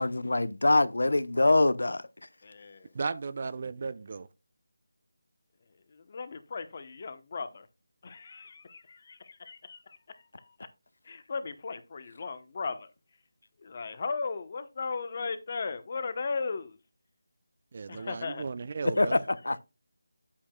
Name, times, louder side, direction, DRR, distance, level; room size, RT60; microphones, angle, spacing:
voice 1, 0.0-2.0 18.8-19.6, left 2 dB, 80° left, 0.7 m, -24 dB
voice 2, 2.4-2.9 5.9-7.7 8.0-10.7 11.0-12.9 13.6-16.8 17.9-18.5, left 4 dB, 30° left, 0.9 m, -37 dB
voice 3, 2.9-4.3 17.7-19.2, right 4 dB, 35° right, 0.4 m, -35 dB
9.8 x 8.5 x 2.3 m
figure-of-eight pair, 175°, 0 cm